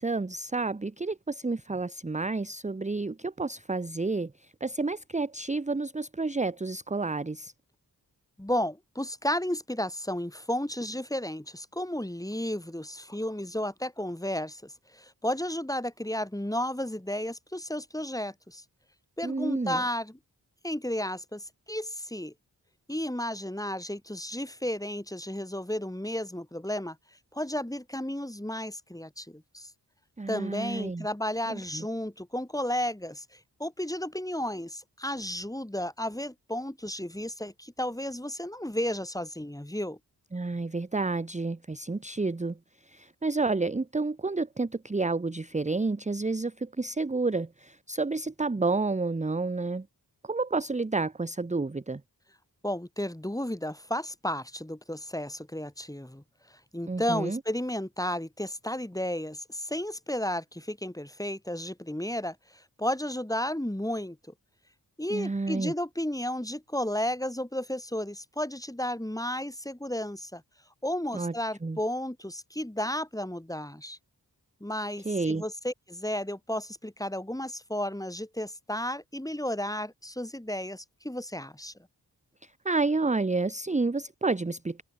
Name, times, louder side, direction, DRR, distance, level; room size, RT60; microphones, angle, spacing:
voice 1, 0.0-7.5 19.2-19.8 30.2-31.1 31.5-31.9 40.3-42.6 42.9-49.9 50.2-52.0 56.9-57.4 65.1-65.7 71.1-71.3 71.6-71.8 75.0-75.4 82.4-84.8, right 3 dB, 20° right, 0.7 m, -30 dB
voice 2, 8.4-18.6 19.2-20.2 20.6-22.3 22.9-27.0 27.3-29.7 30.3-40.0 52.6-56.2 56.7-64.2 65.0-70.4 70.8-74.0 74.6-81.7, left 1 dB, 10° left, 3.4 m, -33 dB
wide cardioid pair, 70°, 40 cm